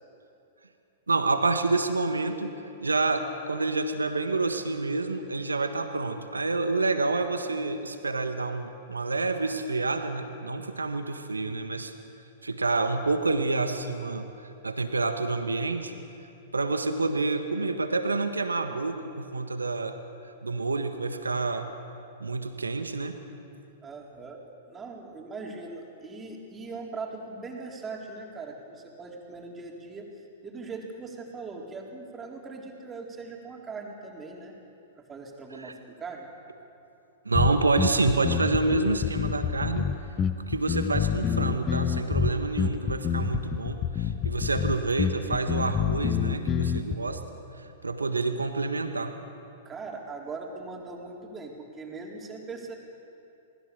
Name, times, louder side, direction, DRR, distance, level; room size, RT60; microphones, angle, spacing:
voice 1, 1.1-11.9 12.4-14.3 14.6-15.9 16.5-20.0 20.4-21.7 22.2-23.2 35.6-35.7 37.2-39.9 40.5-47.2 47.8-49.1, right 3 dB, 85° right, 7 dB, 1.5 m, -28 dB
voice 2, 23.8-24.4 24.7-30.0 30.4-34.5 35.0-36.3 49.6-52.8, right 3 dB, 20° right, 0 dB, 4.1 m, -40 dB
sound 1, 37.3-46.9, left 7 dB, 25° left, 1.1 m, -27 dB
28.0 x 20.0 x 7.0 m, 2.7 s
figure-of-eight pair, 105°, 0 cm